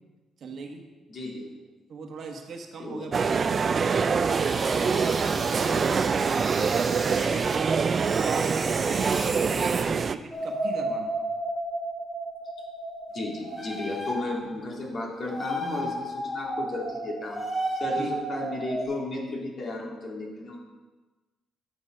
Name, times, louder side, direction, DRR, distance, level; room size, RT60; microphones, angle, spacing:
voice 1, 0.4-0.9 1.9-4.0 4.8-11.1 18.0-18.1, right 4 dB, 60° right, 3 dB, 1.4 m, -40 dB
voice 2, 1.1-1.5 2.8-3.1 5.6-5.8 13.1-17.5 17.8-20.6, left 2 dB, 50° left, -1 dB, 2.2 m, -34 dB
sound 1, 3.1-10.2, right 5 dB, 45° right, 0.4 m, -25 dB
sound 2, 4.3-7.6 7.9-9.8, right 3 dB, 30° right, 1.3 m, -35 dB
sound 3, 10.3-14.5 15.3-18.8, right 1 dB, 10° left, 2.8 m, -32 dB
9.8 x 6.2 x 5.1 m, 1.2 s
cardioid pair, 90°, 0 cm